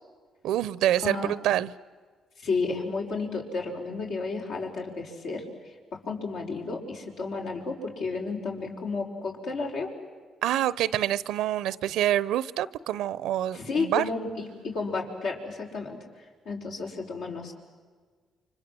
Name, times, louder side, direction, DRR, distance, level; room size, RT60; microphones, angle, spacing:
voice 1, 0.4-1.7 10.4-14.0, right 12 dB, 90° right, 19 dB, 0.7 m, -26 dB
voice 2, 2.4-5.4 5.9-9.9 13.5-17.5, left 4 dB, 80° left, 0 dB, 5.4 m, -32 dB
29.5 x 25.0 x 7.7 m, 1.5 s
cardioid pair, 90°, 0 cm